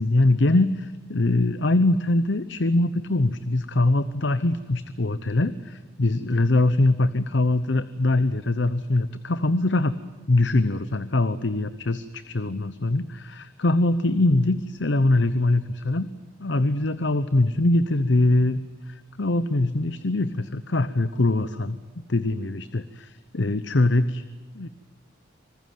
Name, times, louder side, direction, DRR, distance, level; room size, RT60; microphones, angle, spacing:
voice 1, 0.0-9.9 10.3-16.1 16.4-21.8 22.1-24.2 24.5-24.7, left 2 dB, 70° left, 14 dB, 0.9 m, -23 dB
26.5 x 20.0 x 9.3 m, 1.3 s
head